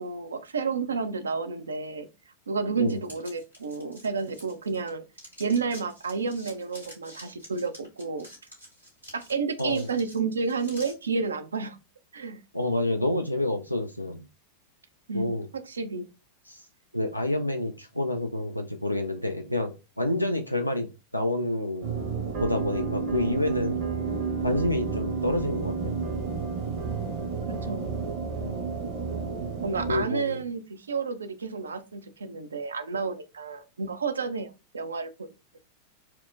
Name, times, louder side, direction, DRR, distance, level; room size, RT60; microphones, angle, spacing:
voice 1, 0.0-2.1 2.5-5.0 5.4-8.3 9.1-11.8 12.1-12.4 15.1-16.1 27.5-28.0 29.6-35.3, right 4 dB, 70° right, 10 dB, 0.4 m, -31 dB
sound 1, 3.0-4.9 5.1-10.9, equal, 90° right, 2.0 m, -48 dB
voice 2, 9.6-9.9 12.5-14.3 15.1-15.5 16.5-16.6 16.9-21.9 22.4-23.8 24.4-25.9 28.4-28.6 29.9-30.4, left 1 dB, 90° left, 5 dB, 0.4 m, -28 dB
sound 2, 21.8-30.0, right 5 dB, 50° right, 0.8 m, -31 dB
4.4 x 2.1 x 2.4 m, 0.28 s
figure-of-eight pair, 90°, 0 cm